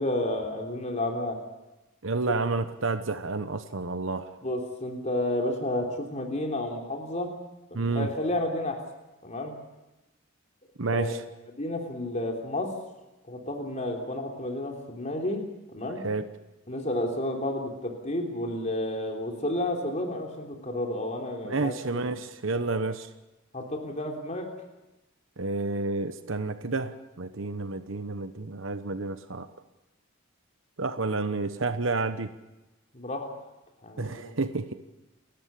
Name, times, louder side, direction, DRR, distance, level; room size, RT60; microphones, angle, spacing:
voice 1, 0.0-1.4 4.4-7.3 7.7-8.8 9.2-9.5 10.9-11.1 11.5-12.7 13.3-15.4 15.7-16.0 16.7-22.1 22.5-22.8 23.5-24.5 32.9-33.3 33.8-34.3, left 1 dB, 35° left, 2 dB, 3.4 m, -31 dB
voice 2, 2.0-4.4 7.7-8.1 10.8-11.2 16.0-16.3 21.4-23.1 25.4-29.5 30.8-32.3 34.0-34.7, right 3 dB, 65° right, 10 dB, 1.0 m, -30 dB
29.5 x 13.5 x 8.4 m, 1.0 s
head